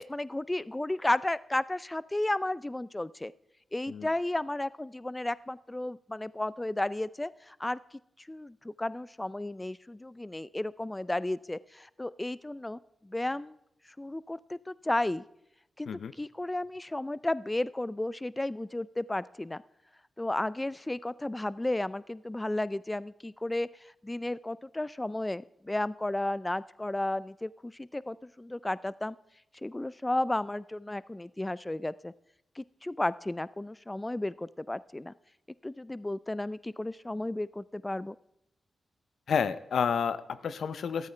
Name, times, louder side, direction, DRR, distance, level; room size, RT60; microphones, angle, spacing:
voice 1, 0.0-3.3 3.7-7.8 8.3-12.8 13.0-13.6 14.0-15.2 15.8-15.9 16.2-19.6 20.2-29.2 29.6-32.1 32.6-35.1 35.6-38.2, left 1 dB, 20° left, 19 dB, 0.3 m, -33 dB
voice 2, 39.3-41.1, left 7 dB, 75° left, 14 dB, 0.6 m, -30 dB
13.5 x 13.0 x 3.3 m, 0.80 s
supercardioid pair, 40°, 0 cm